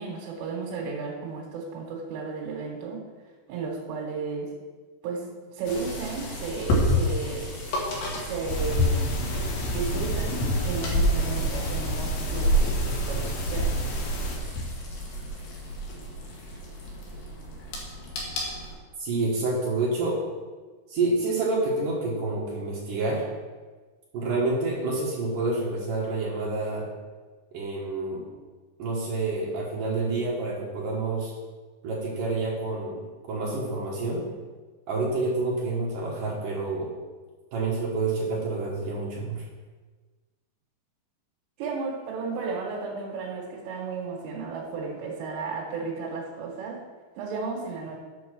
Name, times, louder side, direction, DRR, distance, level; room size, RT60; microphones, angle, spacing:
voice 1, 0.0-3.0 3.5-4.5 5.0-7.5 8.1-9.2 9.7-13.7 41.6-46.8 47.2-48.0, right 4 dB, 80° right, -2 dB, 4.0 m, -34 dB
sound 1, 5.7-18.8, equal, 65° left, 3.7 m, -29 dB
sound 2, 8.5-14.4, right 1 dB, 85° left, 4.0 m, -30 dB
voice 2, 19.0-20.2 20.9-23.2 24.1-26.9 27.5-28.3 28.8-31.3 31.8-33.0 33.3-34.3 34.9-36.9 37.5-39.4, right 3 dB, 65° right, -4 dB, 2.2 m, -28 dB
8.6 x 6.2 x 6.3 m, 1.4 s
omnidirectional pair, 5.7 m